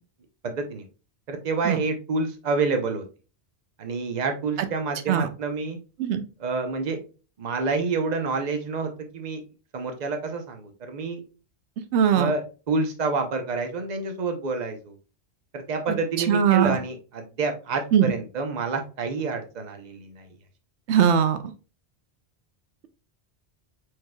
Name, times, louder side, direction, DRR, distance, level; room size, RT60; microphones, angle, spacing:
voice 1, 0.4-0.8 1.3-3.0 3.8-5.8 6.4-7.0 7.4-9.4 9.7-11.2 12.1-14.9 15.5-20.3, right 4 dB, 45° right, 5 dB, 0.9 m, -28 dB
voice 2, 11.9-12.3 16.3-16.8 17.9-18.1 20.9-21.4, right 8 dB, 85° right, 9 dB, 0.9 m, -20 dB
4.7 x 4.5 x 2.2 m, 0.34 s
omnidirectional pair, 1.1 m